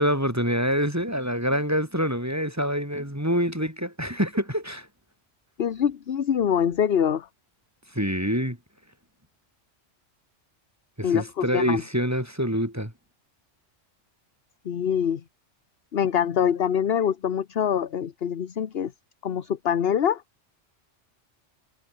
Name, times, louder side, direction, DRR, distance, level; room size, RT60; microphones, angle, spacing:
voice 1, 0.0-4.9 7.9-8.6 11.0-12.9, equal, 15° right, 4.8 m, -26 dB
voice 2, 5.6-7.3 11.0-11.8 14.6-15.2 15.9-18.9 19.2-20.2, left 8 dB, 55° left, 1.1 m, -24 dB
omnidirectional pair, 1.3 m